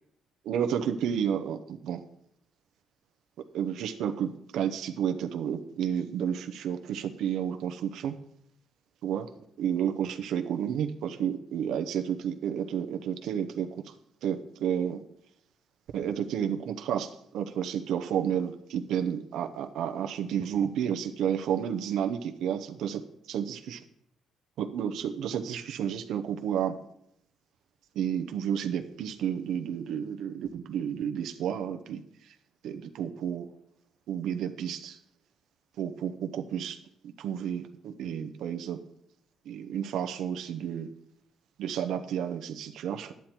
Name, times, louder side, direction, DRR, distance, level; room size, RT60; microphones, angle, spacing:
voice 1, 0.4-2.0 3.5-8.2 9.0-9.3 9.6-13.9 14.2-15.0 15.9-23.0 23.3-23.8 24.6-26.8 27.9-32.0 32.6-33.5 34.1-35.0 35.8-36.8 37.2-38.8 39.5-40.9 41.6-43.1, right 9 dB, 75° right, 7 dB, 0.7 m, -31 dB
10.0 x 9.5 x 4.4 m, 0.73 s
cardioid pair, 145°, 0 cm